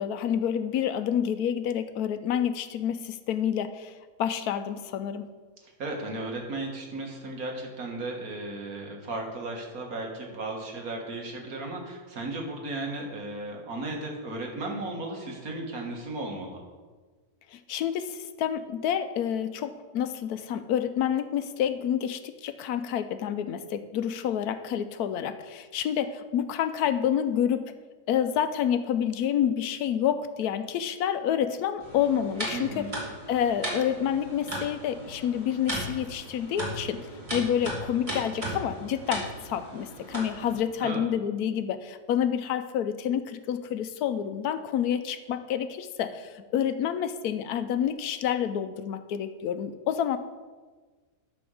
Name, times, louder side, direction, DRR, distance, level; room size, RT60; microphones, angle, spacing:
voice 1, 0.0-5.3 17.5-27.7 28.1-32.9 33.3-50.2, left 9 dB, 80° left, 11 dB, 1.1 m, -28 dB
voice 2, 5.6-16.6 32.5-33.0 40.8-41.0, right 2 dB, 65° right, 1 dB, 2.0 m, -35 dB
sound 1, 31.8-40.6, right 1 dB, 20° right, 2.5 m, -37 dB
12.0 x 4.3 x 6.4 m, 1.4 s
omnidirectional pair, 1.7 m